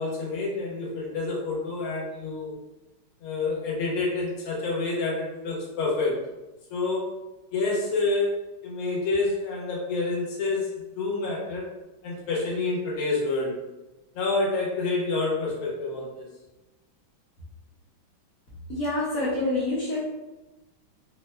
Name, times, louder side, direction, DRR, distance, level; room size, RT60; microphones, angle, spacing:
voice 1, 0.0-2.5 3.2-6.2 6.7-7.1 7.5-8.4 8.6-10.7 11.0-11.7 12.0-13.6 14.1-16.3, left 3 dB, 90° left, -4 dB, 1.6 m, -28 dB
voice 2, 18.7-20.1, left 2 dB, 65° left, -7 dB, 0.9 m, -27 dB
4.6 x 2.1 x 2.2 m, 1.0 s
omnidirectional pair, 2.3 m